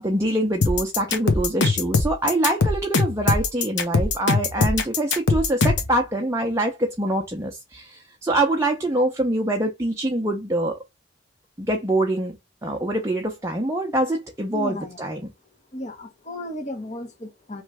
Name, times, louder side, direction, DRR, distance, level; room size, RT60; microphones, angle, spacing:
voice 1, 0.0-10.8 11.6-12.4 12.6-15.3, right 1 dB, 15° right, 0.6 m, -24 dB
sound 1, 0.6-5.9, left 3 dB, 75° left, 1.0 m, -21 dB
voice 2, 14.5-15.0 15.7-17.6, left 1 dB, 40° left, 1.0 m, -34 dB
3.2 x 3.1 x 4.7 m
head